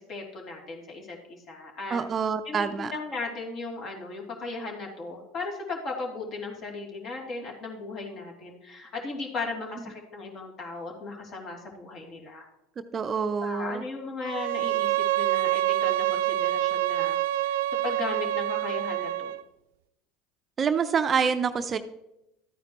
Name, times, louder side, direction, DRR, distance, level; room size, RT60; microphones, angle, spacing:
voice 1, 0.0-2.0 2.4-12.5 13.4-17.6 17.8-19.3, left 3 dB, 45° left, 0 dB, 3.1 m, -37 dB
voice 2, 1.9-2.9 12.9-13.8 20.6-21.8, right 6 dB, 30° right, 10 dB, 0.6 m, -26 dB
Bowed string instrument, 14.2-19.4, right 14 dB, 70° right, 0.4 m, -26 dB
13.0 x 9.2 x 3.1 m, 0.87 s
hypercardioid pair, 80°, 0 cm